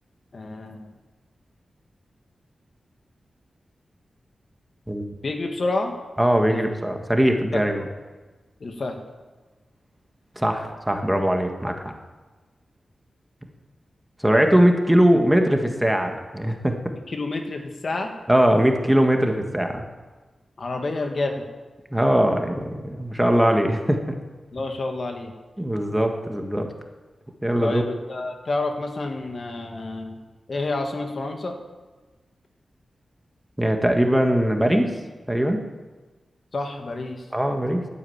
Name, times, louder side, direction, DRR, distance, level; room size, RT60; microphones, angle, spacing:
voice 1, 0.3-0.9 5.2-5.9 6.5-6.6 7.5-7.6 8.6-9.0 17.1-18.1 20.6-21.5 24.5-25.3 27.6-30.2 30.5-31.6 36.5-37.2, left 2 dB, 55° left, 4 dB, 1.8 m, -29 dB
voice 2, 6.2-7.8 10.3-11.9 14.2-16.8 18.3-19.8 21.9-24.0 25.6-26.7 27.4-27.8 33.6-34.9 35.3-35.6 37.3-37.9, equal, 10° right, 4 dB, 1.8 m, -21 dB
11.5 x 8.9 x 8.8 m, 1.3 s
cardioid pair, 65°, 0 cm